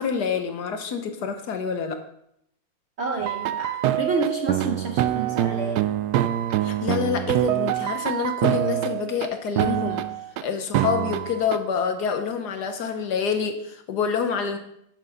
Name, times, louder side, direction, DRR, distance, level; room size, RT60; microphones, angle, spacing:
voice 1, 0.0-2.0 6.6-10.0 10.4-14.6, left 6 dB, 65° left, 7 dB, 1.5 m, -27 dB
voice 2, 3.0-5.9, right 4 dB, 50° right, 4 dB, 0.8 m, -29 dB
sound 1, 3.2-9.3 9.6-10.4 10.7-11.6, right 12 dB, 70° right, 1.1 m, -25 dB
9.9 x 7.7 x 3.9 m, 0.73 s
omnidirectional pair, 1.9 m